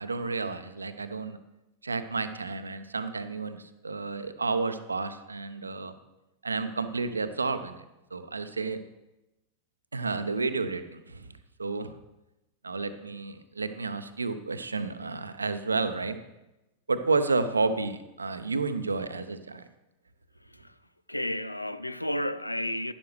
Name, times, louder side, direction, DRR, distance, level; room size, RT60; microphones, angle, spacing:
voice 1, 0.0-1.4 1.8-5.9 6.4-7.8 8.1-8.8 9.9-11.3 11.6-11.9 12.6-16.2 16.9-19.7, right 4 dB, 75° right, 0.7 m, -31 dB
voice 2, 21.1-22.9, left 1 dB, 85° left, 0.4 m, -31 dB
11.5 x 11.0 x 3.2 m
figure-of-eight pair, 90°, 0 cm